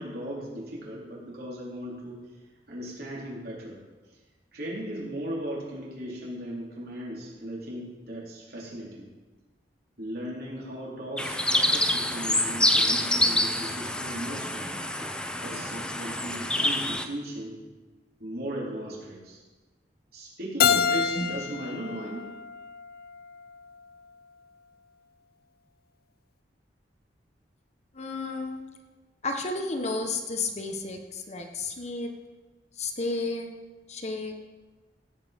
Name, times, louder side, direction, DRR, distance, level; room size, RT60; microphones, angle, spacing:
voice 1, 0.0-2.3 2.7-3.8 4.5-9.1 10.0-14.8 15.4-17.6 18.2-19.4 20.1-22.3, right 1 dB, 60° right, -5 dB, 4.2 m, -37 dB
sound 1, 11.2-17.0, left 1 dB, 5° left, 0.7 m, -26 dB
Keyboard (musical), 20.6-23.4, left 7 dB, 55° left, 0.5 m, -27 dB
voice 2, 27.9-28.6 29.2-32.1 32.8-33.5 33.9-34.3, left 3 dB, 40° left, 4 dB, 1.3 m, -32 dB
16.5 x 8.6 x 5.3 m, 1.3 s
head